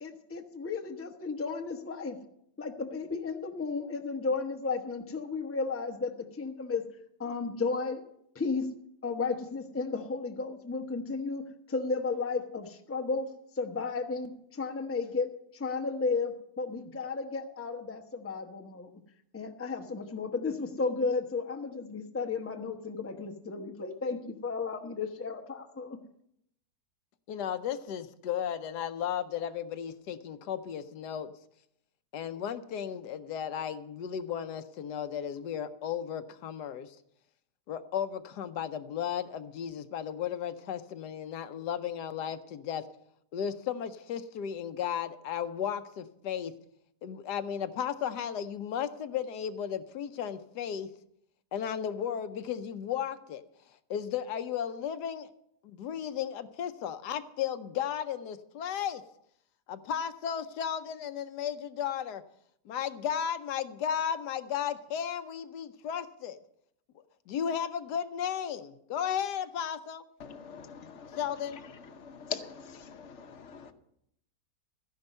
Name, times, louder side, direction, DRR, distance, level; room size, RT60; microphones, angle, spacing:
voice 1, 0.0-2.2 2.6-6.8 7.2-8.0 8.3-8.7 9.0-13.3 13.5-18.9 19.3-26.0, left 4 dB, 10° left, 4 dB, 0.7 m, -33 dB
voice 2, 27.3-31.3 32.1-37.0 37.7-42.8 43.3-46.5 47.0-50.9 51.5-53.4 53.9-55.3 55.6-59.0 59.7-62.2 62.7-66.4 67.3-70.0 71.1-71.6, left 8 dB, 80° left, 10 dB, 1.3 m, -34 dB
voice 3, 70.2-71.1 72.0-73.7, left 7 dB, 50° left, 8 dB, 1.0 m, -42 dB
13.5 x 10.5 x 5.4 m, 0.75 s
omnidirectional pair, 1.8 m